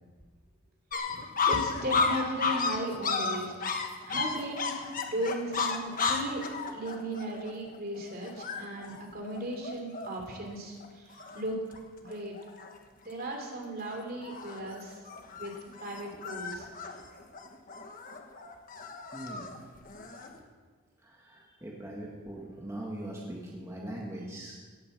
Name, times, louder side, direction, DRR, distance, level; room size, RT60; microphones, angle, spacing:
sound 1, 0.9-10.4 10.8-10.9 11.1-11.8 12.1-12.7 13.2-13.5 13.8-20.4, left 4 dB, 40° left, 1.3 m, -33 dB
voice 1, 1.1-3.7 4.1-4.7 5.1-11.6 12.0-12.3 13.0-15.0 15.4-15.5 15.8-16.7, right 1 dB, 45° right, 2 dB, 2.9 m, -36 dB
voice 2, 19.1-19.6 20.4-20.5 21.0-24.5, right 1 dB, 15° right, -3 dB, 1.8 m, -41 dB
17.0 x 8.5 x 7.4 m, 1.5 s
head